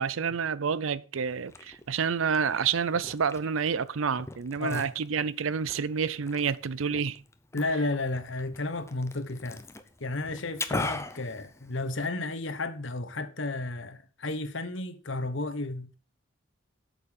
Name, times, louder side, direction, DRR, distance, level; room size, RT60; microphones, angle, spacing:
voice 1, 0.0-7.2, right 6 dB, 80° right, 0.5 m, -29 dB
Liquid, 1.2-12.2, left 2 dB, 15° left, 0.8 m, -41 dB
voice 2, 7.5-9.6 10.0-15.9, left 2 dB, 65° left, 1.2 m, -32 dB
8.7 x 6.9 x 6.5 m
head